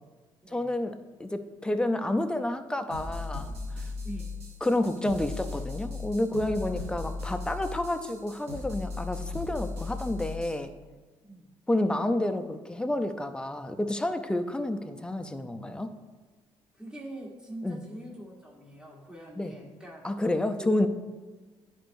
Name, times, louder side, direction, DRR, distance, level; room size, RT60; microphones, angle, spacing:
voice 1, 0.5-3.9 4.6-10.7 11.7-15.9 17.6-17.8 19.4-19.5 20.0-20.9, left 1 dB, 10° left, 7 dB, 0.5 m, -29 dB
sound 1, 2.9-10.6, left 3 dB, 70° right, 1.4 m, -37 dB
voice 2, 6.7-7.0 11.2-11.5 16.7-20.1 20.6-20.9, right 1 dB, 5° right, -4 dB, 1.4 m, -44 dB
10.0 x 4.5 x 2.6 m, 1.3 s
cardioid pair, 85°, 11 cm